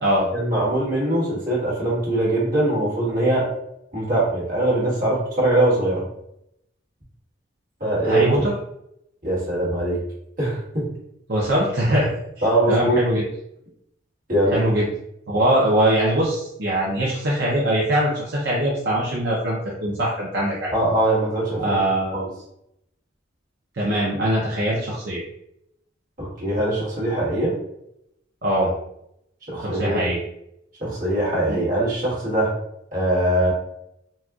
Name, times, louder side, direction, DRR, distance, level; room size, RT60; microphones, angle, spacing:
voice 1, 0.3-3.5 3.9-6.0 7.8-8.2 9.2-10.0 10.4-10.9 12.4-13.0 14.3-14.6 20.7-21.8 22.1-22.3 26.2-27.5 29.5-30.0 30.8-32.5 32.9-33.5, right 1 dB, 45° right, -6 dB, 1.5 m, -22 dB
voice 2, 8.0-8.5 11.3-12.1 12.7-13.2 14.5-14.9 15.3-20.7 21.6-22.2 23.7-25.2 28.4-28.7 29.6-30.2 31.5-31.6, right 1 dB, 60° right, -5 dB, 0.7 m, -22 dB
4.1 x 2.3 x 2.4 m, 0.78 s
head